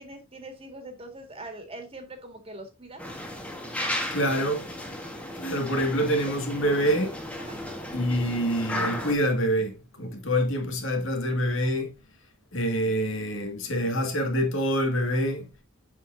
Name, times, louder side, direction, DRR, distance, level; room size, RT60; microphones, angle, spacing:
voice 1, 0.0-3.0 7.4-7.6, right 2 dB, 25° right, 1.8 m, -42 dB
sound 1, 3.0-9.1, left 1 dB, 5° left, 1.3 m, -34 dB
voice 2, 4.1-4.7 5.3-7.2 7.9-11.9 12.5-15.5, equal, 65° left, 1.9 m, -26 dB
7.3 x 6.3 x 2.6 m
head